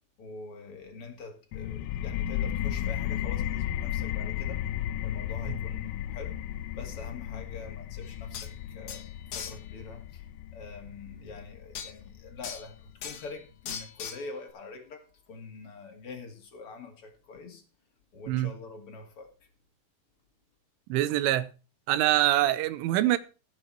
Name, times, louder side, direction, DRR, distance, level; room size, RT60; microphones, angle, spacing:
voice 1, 0.2-4.7 5.0-6.4 6.7-10.3 10.5-17.6 18.1-19.3, left 3 dB, 45° left, 2.1 m, -45 dB
sound 1, 1.5-12.9, left 11 dB, 80° left, 2.4 m, -34 dB
sound 2, 8.0-8.1 8.3-8.5 8.9-9.6 11.7-11.9 12.4-12.7 13.0-13.3 13.7-14.3, left 8 dB, 60° left, 2.1 m, -39 dB
voice 2, 20.9-21.5 21.9-23.2, right 14 dB, 90° right, 3.4 m, -24 dB
15.5 x 7.9 x 4.4 m
omnidirectional pair, 5.4 m